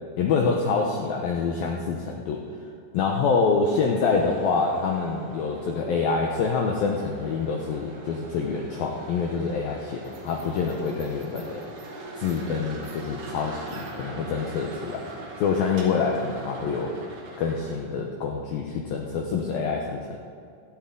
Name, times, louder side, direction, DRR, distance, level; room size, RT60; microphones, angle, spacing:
voice 1, 0.2-2.4 2.9-11.6 12.2-15.1 15.4-17.0 17.4-20.2, left 5 dB, 85° left, 1 dB, 2.1 m, -26 dB
sound 1, 3.6-18.0, right 2 dB, 75° right, 4.7 m, -42 dB
16.5 x 13.0 x 3.9 m, 2.5 s
omnidirectional pair, 5.5 m